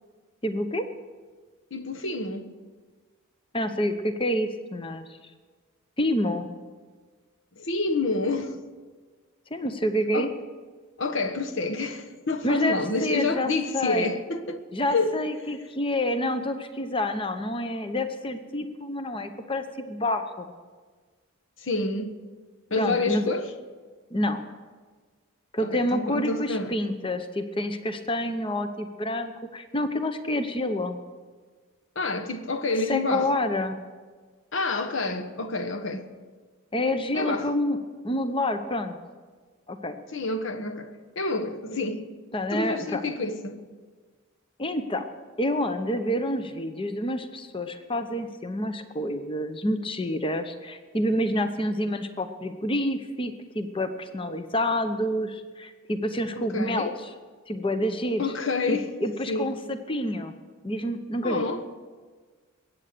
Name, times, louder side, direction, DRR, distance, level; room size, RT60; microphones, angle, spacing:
voice 1, 0.4-0.9 3.5-5.1 6.0-6.5 9.5-10.3 12.4-14.1 14.7-20.5 22.8-23.3 24.1-24.4 25.5-31.0 32.9-33.8 36.7-37.8 38.0-39.0 39.7-40.0 42.3-43.0 44.6-45.1 45.4-56.9 57.5-58.3 58.7-60.3 60.6-61.5, left 1 dB, 25° left, 0.8 m, -28 dB
voice 2, 1.7-2.5 7.6-8.5 10.1-10.3 11.0-14.6 14.9-15.2 21.6-22.2 22.7-23.5 25.6-26.7 31.9-33.3 34.5-36.1 37.1-37.5 40.1-42.1 42.5-43.6 56.3-57.0 58.2-58.9 59.3-59.5 61.2-61.6, left 3 dB, 60° left, 1.1 m, -28 dB
21.5 x 8.8 x 6.7 m
head